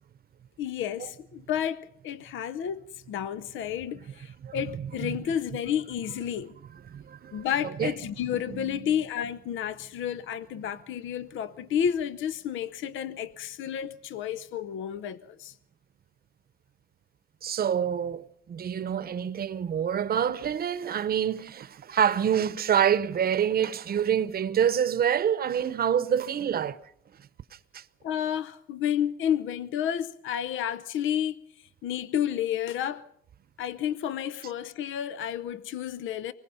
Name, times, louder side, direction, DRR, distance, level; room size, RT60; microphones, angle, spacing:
voice 1, 0.6-6.5 7.3-15.5 28.0-31.4 31.8-33.0 33.6-36.3, left 9 dB, 80° left, 0.7 m, -31 dB
voice 2, 4.4-5.2 6.9-7.9 8.5-8.9 17.4-26.8 27.7-27.8, right 8 dB, 50° right, 0.9 m, -27 dB
24.5 x 20.0 x 5.6 m
cardioid pair, 90°, 20 cm